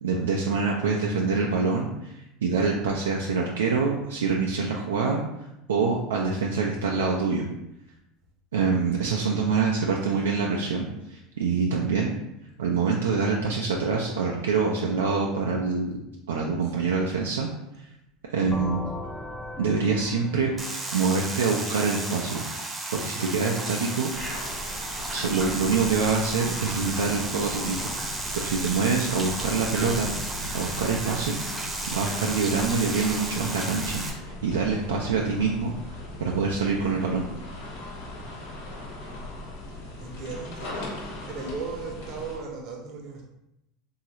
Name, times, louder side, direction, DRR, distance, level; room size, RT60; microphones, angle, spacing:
voice 1, 0.0-2.1 2.4-5.2 5.7-7.5 8.5-12.1 12.6-16.0 16.3-17.5 18.3-18.9 19.6-22.4 22.9-24.1 25.1-27.8 28.3-30.1 30.5-31.4 31.9-35.7 36.2-37.3, right 4 dB, 90° right, -1 dB, 0.3 m, -25 dB
sound 1, 18.5-22.2, left 2 dB, 20° left, 0.4 m, -39 dB
sound 2, 20.6-34.1, right 2 dB, 20° right, 0.7 m, -33 dB
sound 3, 24.1-42.4, left 2 dB, 80° left, 0.9 m, -39 dB
voice 2, 39.7-40.9 41.2-43.2, right 4 dB, 60° right, 0 dB, 0.7 m, -37 dB
3.0 x 2.3 x 2.8 m, 0.86 s
hypercardioid pair, 90°, 0 cm